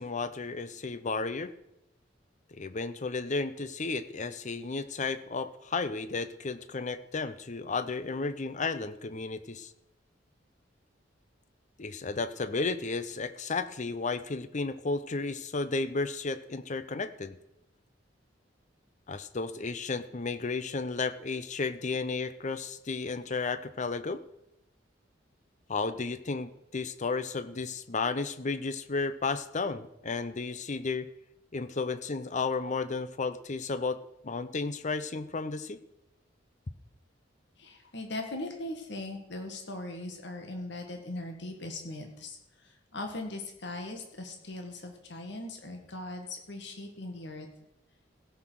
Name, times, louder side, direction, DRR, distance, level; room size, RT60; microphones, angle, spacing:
voice 1, 0.0-1.5 2.5-9.7 11.8-17.4 19.1-24.2 25.7-31.1 31.5-35.8, left 4 dB, 40° left, 13 dB, 0.7 m, -33 dB
voice 2, 37.6-47.5, left 2 dB, 70° left, 4 dB, 1.9 m, -40 dB
16.0 x 6.0 x 6.4 m, 0.85 s
head